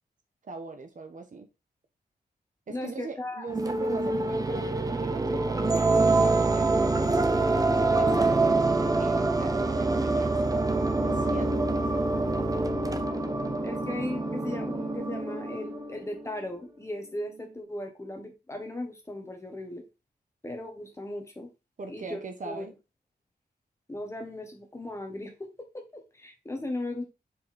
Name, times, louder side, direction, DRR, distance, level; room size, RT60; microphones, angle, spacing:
voice 1, 0.4-1.5 2.7-7.5 7.9-10.7 11.0-11.5 21.8-22.7, right 4 dB, 50° right, 1.1 m, -41 dB
voice 2, 2.7-3.4 13.6-19.8 20.4-21.5 21.9-22.2 22.4-22.6 23.9-27.0, left 1 dB, 15° left, 1.4 m, -37 dB
sound 1, 3.5-16.4, right 2 dB, 20° right, 0.6 m, -26 dB
5.5 x 4.7 x 4.1 m
wide cardioid pair, 165°, 17 cm